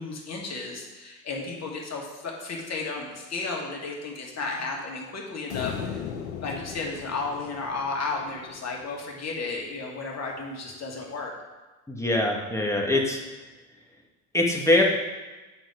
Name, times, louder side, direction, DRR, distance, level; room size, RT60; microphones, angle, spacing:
voice 1, 0.0-11.3, left 3 dB, 40° left, 0 dB, 2.1 m, -33 dB
sound 1, 5.5-8.9, left 8 dB, 80° left, 0.9 m, -37 dB
voice 2, 11.9-13.2 14.3-14.8, left 1 dB, 5° left, -1 dB, 1.6 m, -23 dB
9.2 x 4.2 x 5.0 m, 1.2 s
hypercardioid pair, 75°, 41 cm